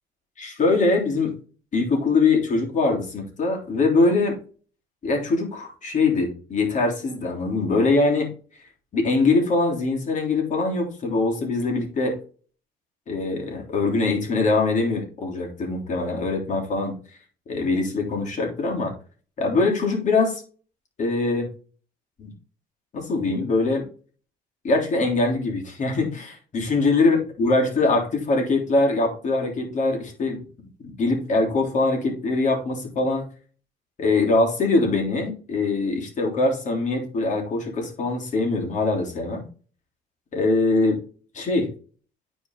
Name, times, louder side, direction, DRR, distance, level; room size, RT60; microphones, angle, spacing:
voice 1, 0.4-1.3 1.7-4.4 5.0-8.3 8.9-12.2 13.1-17.0 17.5-18.9 19.4-20.4 21.0-21.5 22.2-22.3 22.9-23.9 24.6-30.4 30.8-33.2 34.0-39.4 40.3-41.0 41.3-41.7, left 3 dB, 45° left, 1 dB, 3.5 m, -22 dB
9.6 x 4.7 x 3.9 m, 0.40 s
cardioid pair, 110°, 17 cm